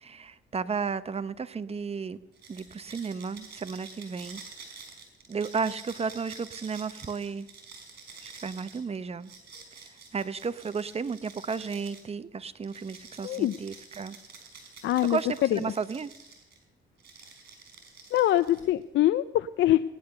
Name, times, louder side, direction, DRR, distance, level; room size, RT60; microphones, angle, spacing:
voice 1, 0.0-2.2 2.5-4.4 5.3-7.5 8.2-9.3 10.1-14.2 15.0-16.1, right 5 dB, 30° right, 14 dB, 0.8 m, -33 dB
sound 1, 2.3-12.1 12.6-16.6 17.0-18.8, right 4 dB, 55° right, 5.0 m, -49 dB
voice 2, 13.2-13.5 14.8-15.2 15.5-15.6 18.1-19.8, left 13 dB, 70° left, 13 dB, 0.5 m, -24 dB
18.0 x 10.5 x 6.7 m, 0.92 s
cardioid pair, 90°, 20 cm